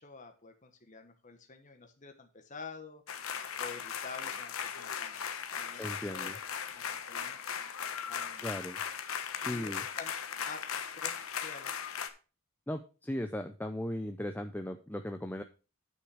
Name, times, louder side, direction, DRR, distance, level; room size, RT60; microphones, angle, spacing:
voice 1, 0.0-3.0 3.6-5.2 5.5-6.4 6.7-7.4 8.1-8.5 9.4-10.1 10.4-11.7, left 4 dB, 35° left, 5 dB, 1.2 m, -48 dB
sound 1, 3.1-12.1, left 7 dB, 90° left, 1.1 m, -38 dB
voice 2, 5.8-6.3 8.4-8.8 9.4-9.8 12.7-15.4, left 1 dB, 10° left, 7 dB, 0.5 m, -37 dB
9.5 x 5.9 x 4.8 m, 0.33 s
head